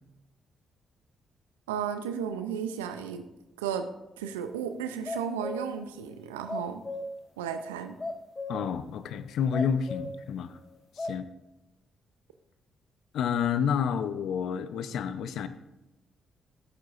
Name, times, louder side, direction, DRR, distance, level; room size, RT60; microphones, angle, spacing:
voice 1, 1.7-3.3 3.6-3.9 4.2-6.8 7.4-8.0, right 7 dB, 90° right, 8 dB, 0.4 m, -34 dB
sound 1, 4.3-4.4 4.8-5.7 6.2-7.2 7.6-7.7 8.0-8.7 9.1-9.2 9.5-10.2 10.7-11.2, left 2 dB, 30° left, 0.8 m, -36 dB
voice 2, 8.5-10.6 10.9-11.2 13.1-15.5, left 7 dB, 70° left, 12 dB, 0.6 m, -29 dB
14.5 x 8.4 x 2.5 m, 0.96 s
hypercardioid pair, 45°, 0 cm